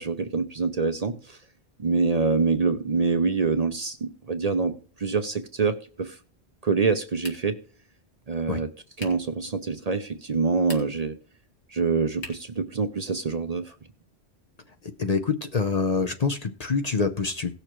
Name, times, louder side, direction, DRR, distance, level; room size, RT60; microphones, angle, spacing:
voice 1, 0.0-1.4 1.8-4.7 5.0-6.2 6.6-7.6 8.3-8.7 9.0-11.2 11.7-13.7, right 4 dB, 40° right, 8 dB, 0.7 m, -25 dB
sound 1, 7.2-7.7 9.0-9.3 10.5-11.1 12.2-12.6, left 3 dB, 80° left, 2.2 m, -42 dB
voice 2, 14.8-17.5, left 4 dB, 45° left, 7 dB, 0.6 m, -26 dB
17.5 x 6.6 x 3.0 m, 0.42 s
omnidirectional pair, 1.1 m